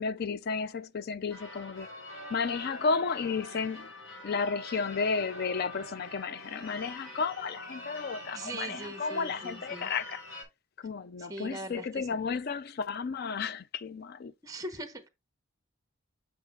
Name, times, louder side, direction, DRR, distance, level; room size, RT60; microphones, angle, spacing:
voice 1, 0.0-1.9 2.3-3.9 4.2-10.2 10.8-14.3, left 5 dB, 50° left, 0.4 m, -33 dB
Church bell / Car / Alarm, 1.3-10.4, left 1 dB, 80° left, 4.7 m, -45 dB
voice 2, 8.3-9.9 11.2-12.1 14.4-15.1, right 2 dB, 15° right, 0.9 m, -41 dB
7.9 x 6.3 x 2.4 m
head